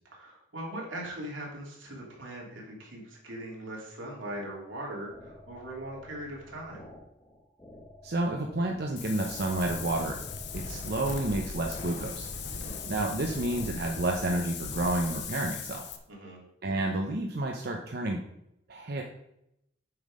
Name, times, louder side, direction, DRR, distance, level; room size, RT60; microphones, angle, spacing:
voice 1, 0.1-6.8 12.5-12.8 16.1-16.4, right 1 dB, 85° right, -2 dB, 2.9 m, -40 dB
sound 1, 4.7-14.5, left 1 dB, 15° left, 1.3 m, -52 dB
voice 2, 8.0-10.2 10.5-12.3 12.9-15.8 16.6-18.2 18.7-19.0, right 2 dB, 55° right, 1 dB, 0.8 m, -30 dB
Wind, 9.0-16.0, left 5 dB, 65° left, 0.9 m, -38 dB
7.8 x 5.5 x 5.0 m, 0.80 s
head